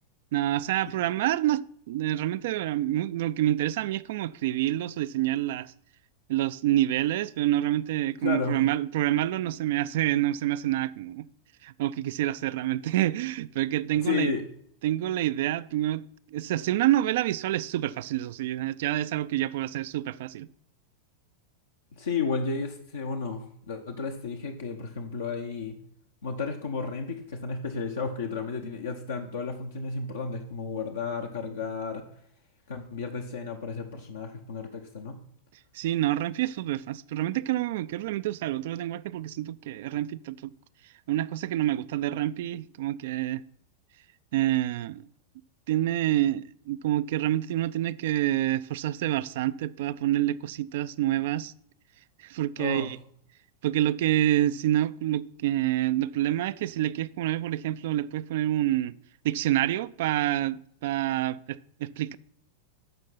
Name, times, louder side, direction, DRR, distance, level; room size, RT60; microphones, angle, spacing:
voice 1, 0.3-5.7 6.3-11.3 11.6-14.3 14.8-20.5 35.7-40.5 41.1-43.4 44.3-45.1 45.7-51.5 52.2-53.0 53.6-58.9 59.2-62.2, right 13 dB, 55° right, 0.4 m, -27 dB
voice 2, 8.2-8.6 14.0-14.4 22.0-25.8 26.2-32.0 32.7-35.2 52.6-52.9, left 5 dB, 65° left, 0.9 m, -32 dB
13.5 x 5.3 x 5.7 m
figure-of-eight pair, 90°, 0 cm